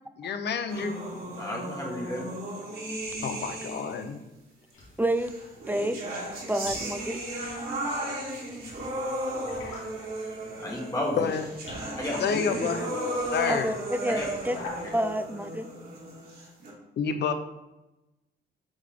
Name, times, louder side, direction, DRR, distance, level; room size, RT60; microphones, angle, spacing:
voice 1, 0.2-1.0 3.2-4.2 11.2-11.5 12.2-12.9 13.3-13.7 17.0-17.3, left 6 dB, 60° left, 9 dB, 0.7 m, -29 dB
sound 1, 0.7-4.2 5.2-16.7, right 1 dB, 50° right, 2.2 m, -35 dB
voice 2, 1.4-2.2 10.2-11.3 12.0-12.7 13.4-13.5 14.0-14.3, left 1 dB, 15° left, -3 dB, 1.5 m, -33 dB
sound 2, 4.7-15.3, left 2 dB, 80° left, 2.3 m, -47 dB
voice 3, 5.0-5.3 5.7-6.0 6.5-7.2 13.5-13.7 14.0-14.6 14.9-15.7, right 1 dB, 10° right, 10 dB, 0.4 m, -28 dB
8.0 x 3.9 x 3.6 m, 0.98 s
cardioid pair, 90°, 20 cm